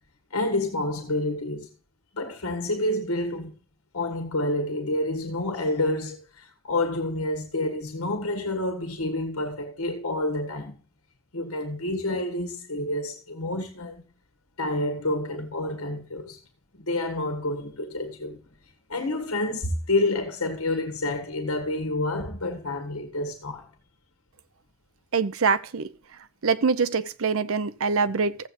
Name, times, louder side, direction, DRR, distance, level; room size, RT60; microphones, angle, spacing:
voice 1, 0.3-1.7 2.1-3.5 3.9-10.8 11.3-14.0 14.6-16.4 16.7-18.4 18.9-23.7, left 2 dB, 70° left, 1.6 m, -28 dB
voice 2, 25.1-25.9 26.4-28.5, right 5 dB, 70° right, 0.7 m, -24 dB
15.0 x 7.9 x 2.6 m
head